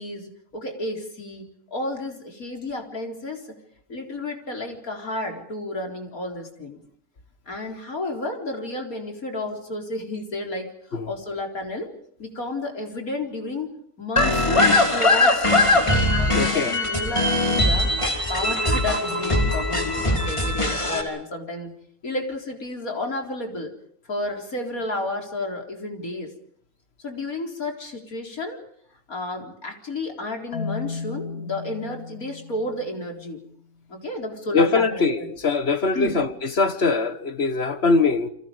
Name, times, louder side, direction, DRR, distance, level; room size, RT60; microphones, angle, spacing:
voice 1, 0.0-3.6 3.9-6.8 7.5-11.9 12.2-13.7 14.0-15.9 16.5-17.9 18.3-21.7 22.0-23.7 24.1-26.3 27.0-28.6 29.1-33.4 33.9-35.3 35.9-36.2, left 2 dB, 65° left, 4.6 m, -31 dB
sound 1, 14.2-21.0, left 2 dB, 20° left, 3.3 m, -21 dB
voice 2, 16.3-16.7 34.5-38.3, left 4 dB, 45° left, 1.9 m, -22 dB
Marimba xylophone, 30.5-33.5, left 4 dB, 85° left, 2.8 m, -35 dB
29.0 x 26.0 x 5.2 m
omnidirectional pair, 1.6 m